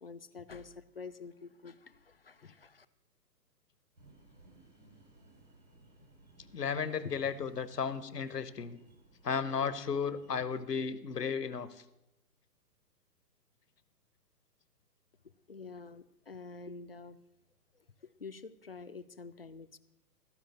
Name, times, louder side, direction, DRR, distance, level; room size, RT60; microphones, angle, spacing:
voice 1, 0.0-2.9 15.5-17.2 18.0-19.8, left 4 dB, 40° left, 14 dB, 0.4 m, -48 dB
sound 1, 4.0-10.3, right 2 dB, 90° right, 4.5 m, -61 dB
voice 2, 6.5-8.8 9.2-11.7, left 6 dB, 70° left, 15 dB, 1.0 m, -34 dB
15.5 x 5.3 x 7.6 m, 0.90 s
figure-of-eight pair, 125°, 50 cm